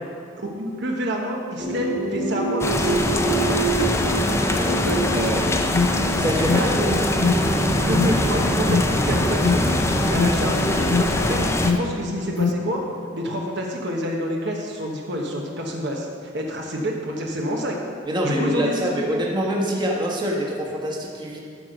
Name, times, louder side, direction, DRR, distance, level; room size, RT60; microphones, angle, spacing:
voice 1, 0.6-3.0 4.8-5.3 6.4-7.0 7.6-11.4 11.7-12.8 13.1-17.8 18.2-18.9, equal, 65° right, 0 dB, 1.2 m, -28 dB
sound 1, 1.6-13.5, right 2 dB, 40° right, 2.7 m, -28 dB
sound 2, 2.6-11.7, left 1 dB, 15° left, 0.5 m, -23 dB
voice 2, 3.5-3.9 4.5-4.8 5.1-5.5 6.2-6.9 18.1-21.4, equal, 25° right, -3 dB, 1.3 m, -25 dB
Alarm, 5.2-12.7, left 5 dB, 65° left, 0.5 m, -25 dB
12.0 x 4.6 x 6.5 m, 2.2 s
head